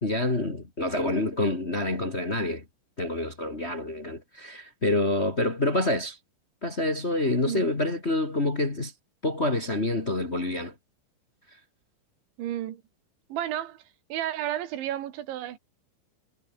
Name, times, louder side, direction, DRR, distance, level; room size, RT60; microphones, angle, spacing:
voice 1, 0.0-2.6 3.0-6.2 6.6-8.9 9.2-10.7, left 2 dB, 35° left, 1.0 m, -27 dB
voice 2, 12.4-12.8 13.3-13.8 14.1-15.6, right 12 dB, 75° right, 4.2 m, -32 dB
omnidirectional pair, 5.4 m